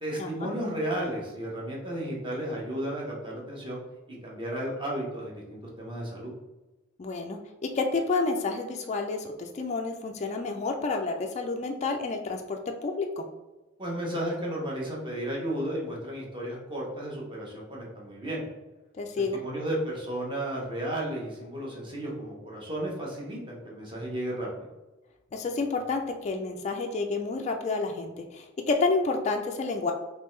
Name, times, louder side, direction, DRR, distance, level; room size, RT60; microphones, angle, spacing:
voice 1, 0.0-3.8 4.1-6.3 13.8-18.4 19.3-24.7, right 1 dB, 25° right, -3 dB, 0.9 m, -33 dB
voice 2, 7.0-13.2 19.0-19.4 25.3-29.9, left 3 dB, 30° left, 3 dB, 0.3 m, -29 dB
3.5 x 3.2 x 3.1 m, 1.1 s
head